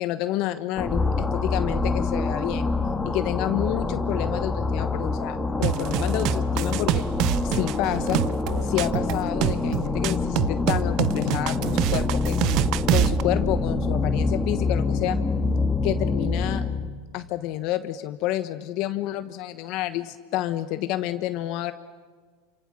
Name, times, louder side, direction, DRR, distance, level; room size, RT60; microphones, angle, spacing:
voice 1, 0.0-2.7 3.1-7.0 7.4-8.2 8.6-12.6 12.9-15.2 15.8-16.6 17.1-21.7, left 14 dB, 55° left, 10 dB, 1.2 m, -29 dB
sound 1, 0.8-17.0, left 3 dB, 10° left, 1.9 m, -26 dB
sound 2, 5.6-13.2, right 15 dB, 50° right, 0.7 m, -26 dB
28.0 x 25.5 x 6.6 m, 1.5 s
supercardioid pair, 115°, 0 cm